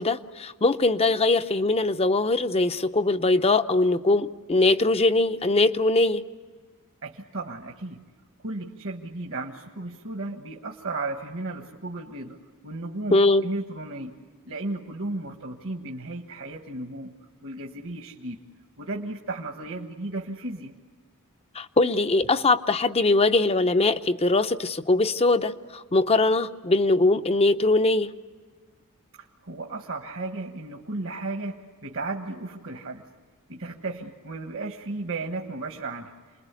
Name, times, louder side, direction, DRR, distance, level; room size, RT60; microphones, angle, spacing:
voice 1, 0.0-6.2 13.1-13.5 21.5-28.1, left 2 dB, 25° left, 10 dB, 0.7 m, -21 dB
voice 2, 7.0-8.0 8.4-12.4 12.6-13.2 13.4-14.1 14.5-17.1 17.4-18.4 18.8-20.7 29.2-33.0 33.5-36.1, right 2 dB, 65° right, 3 dB, 1.5 m, -34 dB
29.0 x 21.0 x 8.3 m, 1.5 s
head